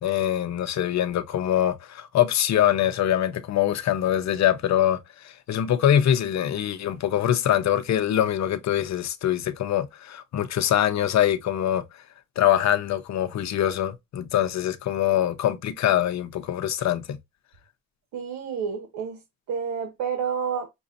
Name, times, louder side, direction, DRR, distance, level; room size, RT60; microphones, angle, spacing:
voice 1, 0.0-11.8 12.4-17.2, left 11 dB, 65° left, 0.8 m, -23 dB
voice 2, 18.1-19.2 19.5-20.7, right 6 dB, 85° right, 1.2 m, -29 dB
6.1 x 2.8 x 2.6 m
cardioid pair, 90°, 30 cm